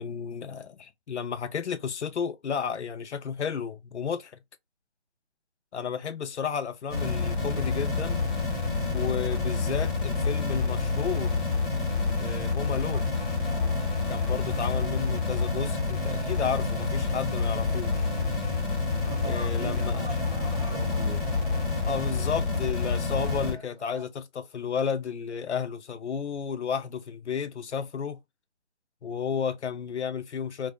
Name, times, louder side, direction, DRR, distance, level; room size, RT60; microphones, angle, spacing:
voice 1, 0.0-4.3 5.7-8.2 8.9-11.3 12.2-13.1 14.1-18.1 19.2-20.1 21.8-28.2 29.0-30.7, left 7 dB, 75° left, 0.5 m, -32 dB
sound 1, 6.9-23.5, left 4 dB, 45° left, 1.2 m, -28 dB
sound 2, 12.9-24.1, right 2 dB, 55° right, 1.2 m, -46 dB
voice 2, 19.0-21.2, right 2 dB, 20° left, 0.4 m, -42 dB
2.4 x 2.3 x 2.4 m
figure-of-eight pair, 150°, 34 cm